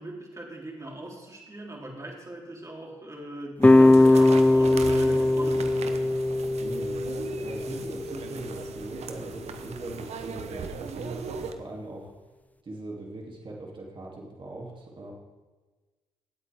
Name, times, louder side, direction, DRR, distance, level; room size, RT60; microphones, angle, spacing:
voice 1, 0.0-6.0, right 1 dB, 25° right, -2 dB, 3.6 m, -40 dB
sound 1, 3.6-8.7, left 2 dB, 15° left, 0.6 m, -21 dB
sound 2, 3.6-11.5, right 6 dB, 65° right, 1.1 m, -39 dB
voice 2, 6.6-7.0 7.4-12.1 12.6-15.1, right 2 dB, 45° right, -3 dB, 3.0 m, -40 dB
18.5 x 8.4 x 3.7 m, 1.3 s
supercardioid pair, 55°, 12 cm